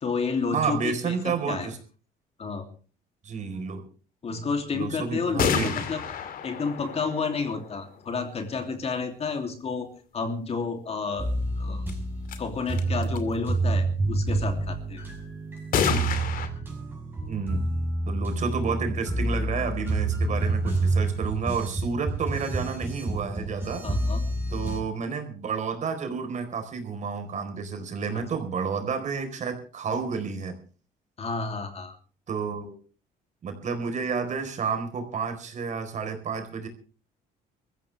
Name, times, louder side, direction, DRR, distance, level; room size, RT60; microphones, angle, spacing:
voice 1, 0.0-1.7 2.4-2.7 4.2-6.0 6.4-11.3 11.6-11.8 12.4-15.0 23.8-24.2 28.1-28.2 31.2-32.0, left 4 dB, 40° left, 6 dB, 3.0 m, -30 dB
voice 2, 0.5-1.8 3.2-3.8 4.7-5.8 17.3-17.6 18.1-23.8 24.5-30.6 32.3-32.8 33.4-36.7, right 5 dB, 45° right, 6 dB, 4.4 m, -30 dB
sound 1, 5.4-8.2 11.9-12.0 12.3-12.4 12.7-13.2 15.7-16.5, left 7 dB, 60° left, 2.4 m, -29 dB
sound 2, 11.2-24.8, right 2 dB, 10° right, 6.5 m, -28 dB
23.0 x 14.5 x 3.4 m, 0.37 s
cardioid pair, 110°, 17 cm